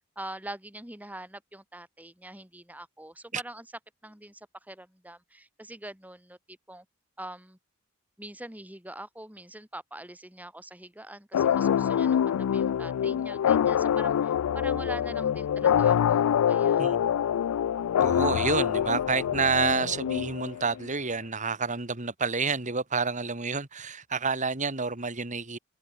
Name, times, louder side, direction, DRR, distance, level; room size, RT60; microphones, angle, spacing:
voice 1, 0.2-3.7 4.0-6.8 7.2-7.6 8.2-16.9, right 1 dB, 5° right, 4.6 m, -43 dB
sound 1, 11.3-20.8, left 9 dB, 85° left, 0.3 m, -25 dB
voice 2, 16.8-17.2 18.0-25.6, right 4 dB, 35° right, 2.3 m, -29 dB
head